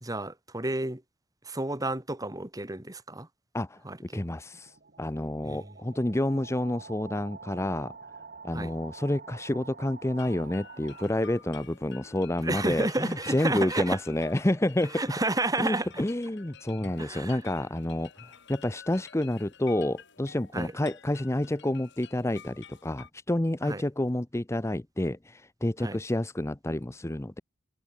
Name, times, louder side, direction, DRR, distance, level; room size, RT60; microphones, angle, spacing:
voice 1, 0.0-1.0 1.5-3.3 3.8-4.2 5.4-5.7 8.5-8.7 12.4-14.0 14.9-16.0 17.0-17.4 20.5-20.7 23.6-23.8 25.8-26.0, right 2 dB, 15° right, 1.9 m, -31 dB
sound 1, 4.0-11.8, right 5 dB, 45° right, 1.8 m, -48 dB
voice 2, 4.1-7.9 8.4-15.0 15.6-18.1 18.5-27.4, left 1 dB, 15° left, 0.7 m, -29 dB
sound 2, 10.2-23.1, left 8 dB, 55° left, 3.5 m, -51 dB
head